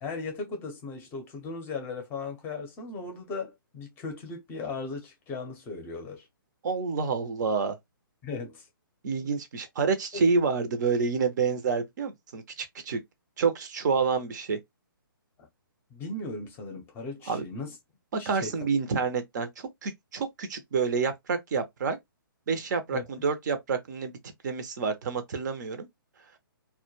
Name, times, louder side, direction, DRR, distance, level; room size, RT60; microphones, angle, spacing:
voice 1, 0.0-6.3 8.2-8.6 9.2-9.3 10.1-10.3 15.4-15.5 15.9-17.8 18.2-18.6 22.9-23.0, left 3 dB, 15° left, 0.6 m, -37 dB
voice 2, 6.6-7.8 9.0-13.0 13.4-14.6 17.3-17.4 18.3-22.0 22.5-24.1 24.4-25.9, right 5 dB, 50° right, 0.6 m, -28 dB
2.2 x 2.1 x 3.0 m
hypercardioid pair, 140°, 12 cm